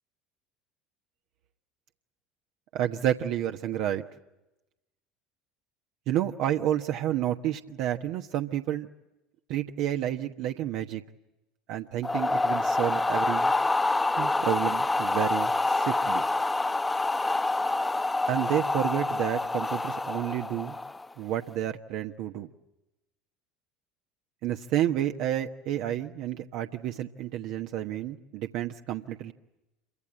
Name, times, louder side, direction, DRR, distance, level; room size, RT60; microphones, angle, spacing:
voice 1, 2.7-4.0 6.1-8.9 9.5-11.0 11.7-13.5 14.2-16.2 18.3-20.7 21.2-22.5 24.4-29.3, right 11 dB, 60° right, 5 dB, 1.2 m, -30 dB
sound 1, 12.0-21.1, left 2 dB, 15° left, 1.2 m, -27 dB
28.0 x 24.0 x 8.7 m, 0.99 s
hypercardioid pair, 70°, 0 cm